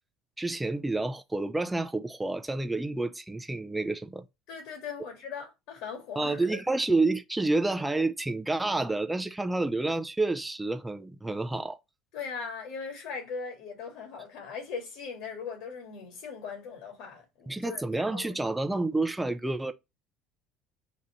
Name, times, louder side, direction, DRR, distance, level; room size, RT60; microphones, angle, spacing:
voice 1, 0.4-4.2 6.2-11.8 17.5-19.7, right 2 dB, 10° right, 0.5 m, -29 dB
voice 2, 4.5-6.6 12.1-17.8 18.1-18.3, left 5 dB, 70° left, 1.9 m, -39 dB
4.1 x 2.5 x 4.3 m
supercardioid pair, 110°, 0 cm